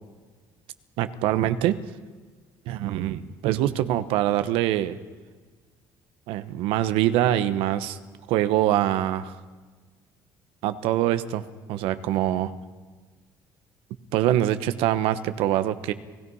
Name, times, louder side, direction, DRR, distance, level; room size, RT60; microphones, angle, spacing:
voice 1, 1.0-1.8 2.7-5.0 6.3-8.0 8.3-9.4 10.6-12.5 14.1-15.9, right 13 dB, 90° right, 12 dB, 1.1 m, -24 dB
30.0 x 17.5 x 5.6 m, 1.4 s
cardioid pair, 135°, 9 cm